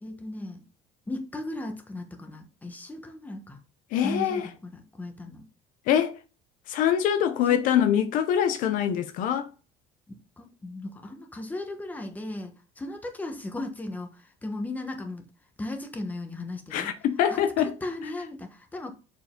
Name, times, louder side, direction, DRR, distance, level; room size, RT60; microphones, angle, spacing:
voice 1, 0.0-0.6 1.1-3.6 4.0-5.5 7.5-7.8 10.4-14.1 14.4-15.2 15.6-16.9 17.3-18.9, left 1 dB, 10° left, 1.2 m, -36 dB
voice 2, 3.9-4.5 5.9-6.1 6.7-9.5 16.7-17.7, left 9 dB, 65° left, 0.7 m, -24 dB
6.8 x 4.7 x 3.8 m
cardioid pair, 135°, 15 cm